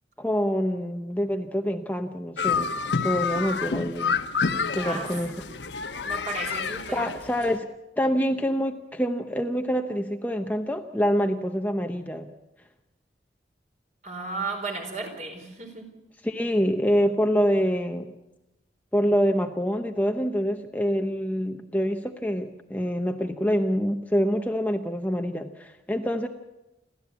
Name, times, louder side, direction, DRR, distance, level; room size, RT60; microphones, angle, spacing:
voice 1, 0.2-2.7 3.0-4.2 4.7-5.3 6.9-7.7 8.0-12.3 16.2-18.1 18.9-26.3, equal, 10° left, 5 dB, 0.8 m, -26 dB
sound 1, 2.4-7.6, left 5 dB, 85° left, 1.2 m, -29 dB
voice 2, 4.8-5.1 5.4-7.1 14.0-15.9, right 3 dB, 40° right, 3 dB, 4.5 m, -35 dB
29.0 x 13.0 x 8.4 m, 0.98 s
head